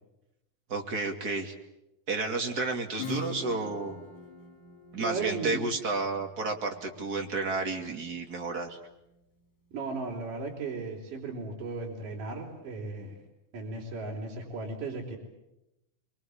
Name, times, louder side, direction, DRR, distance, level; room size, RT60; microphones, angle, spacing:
voice 1, 0.7-1.5 2.1-4.0 4.9-8.8, right 3 dB, 30° right, 3 dB, 2.6 m, -31 dB
Acoustic guitar / Strum, 3.0-8.4, left 2 dB, 70° left, 4.4 m, -43 dB
voice 2, 5.0-5.6 9.7-13.1 13.5-15.2, right 4 dB, 70° right, -2 dB, 5.5 m, -36 dB
25.0 x 23.5 x 8.7 m, 0.90 s
omnidirectional pair, 3.8 m